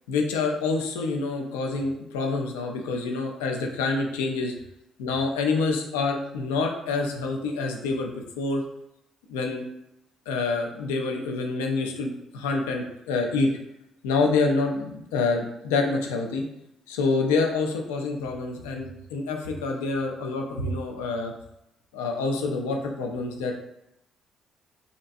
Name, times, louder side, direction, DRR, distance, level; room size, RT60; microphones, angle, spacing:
voice 1, 0.1-4.5 5.0-8.1 8.4-8.6 9.3-9.6 10.3-13.5 14.0-16.4 16.9-21.3 21.9-23.5, left 3 dB, 80° left, 2 dB, 0.3 m, -27 dB
2.6 x 2.2 x 2.5 m, 0.84 s
hypercardioid pair, 45°, 0 cm